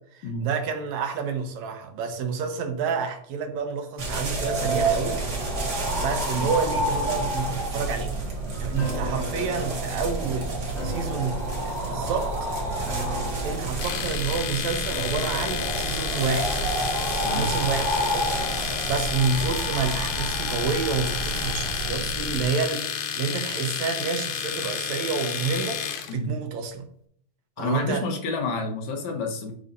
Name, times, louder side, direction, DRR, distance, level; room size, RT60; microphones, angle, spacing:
voice 1, 0.1-5.2 5.6-8.2 8.6-12.3 13.4-16.7 17.3-18.3 18.8-25.8 26.1-26.9 27.6-28.0, right 5 dB, 75° right, 5 dB, 2.3 m, -29 dB
sound 1, 4.0-22.4, right 2 dB, 40° right, 1.7 m, -29 dB
sound 2, 4.6-19.9 20.3-20.4, right 1 dB, 35° left, 2.4 m, -39 dB
Domestic sounds home sounds, 13.8-26.1, left 8 dB, 85° left, 2.4 m, -31 dB
voice 2, 17.2-17.6 26.1-26.4 27.6-29.5, left 3 dB, 70° left, 2 dB, 2.5 m, -29 dB
11.0 x 5.3 x 2.7 m, 0.65 s
omnidirectional pair, 3.3 m